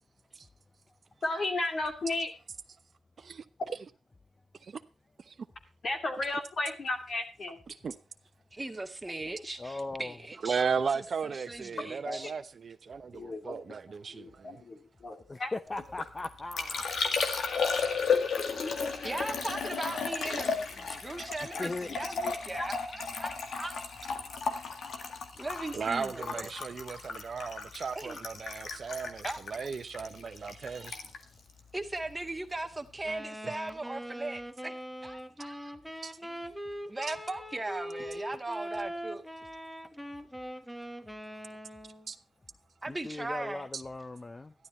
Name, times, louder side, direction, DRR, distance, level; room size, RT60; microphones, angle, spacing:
voice 1, 1.2-2.3 5.8-7.6 12.0-12.3 13.1-13.8 14.1-15.5 18.6-19.2 21.6-22.3 22.6-22.7, left 2 dB, 55° left, 2.6 m, -35 dB
voice 2, 8.5-12.3 19.0-23.7 24.7-24.8 25.3-26.5 27.9-28.2 29.2-29.4 31.7-34.7 35.0-35.7 36.2-36.5 36.9-39.3 42.8-43.7, right 2 dB, 20° right, 1.8 m, -39 dB
voice 3, 9.6-10.1 15.3-16.9 21.6-21.9 42.9-44.5, left 2 dB, 30° left, 0.7 m, -38 dB
voice 4, 10.4-14.6 25.7-31.0 33.4-33.5 36.0-36.1 37.1-37.2 42.1-42.2, right 5 dB, 60° right, 0.9 m, -35 dB
Liquid, 15.8-32.4 32.6-33.2, left 5 dB, 75° left, 1.9 m, -34 dB
Wind instrument woodwind instrument, 33.0-42.1, equal, ahead, 1.4 m, -42 dB
12.5 x 11.5 x 4.3 m
cardioid pair, 60°, 0 cm